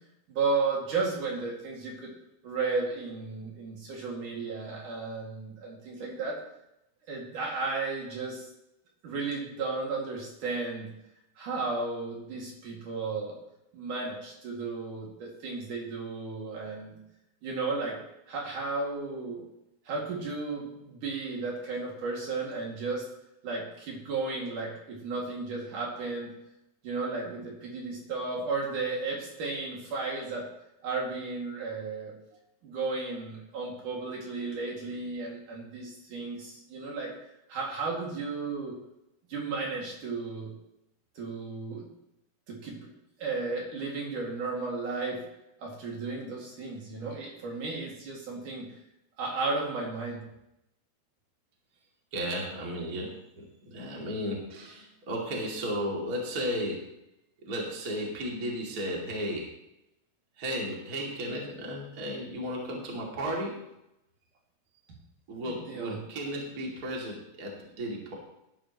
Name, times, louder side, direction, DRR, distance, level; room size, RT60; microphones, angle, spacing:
voice 1, 0.3-2.1 2.4-6.4 7.1-8.5 9.0-10.9 11.4-13.4 13.7-16.9 17.4-18.0 18.3-19.5 19.9-23.1 23.4-26.3 26.8-30.5 30.8-32.1 32.6-37.1 37.5-38.7 39.3-40.5 41.2-41.9 42.5-42.8 43.2-45.2 45.6-48.7 49.2-50.2 65.5-66.0, right 3 dB, 55° right, -2 dB, 3.5 m, -34 dB
voice 2, 52.1-56.9 57.4-59.5 60.4-63.6 65.3-68.1, equal, 25° right, -2 dB, 2.4 m, -34 dB
18.5 x 11.0 x 3.1 m, 0.84 s
omnidirectional pair, 4.5 m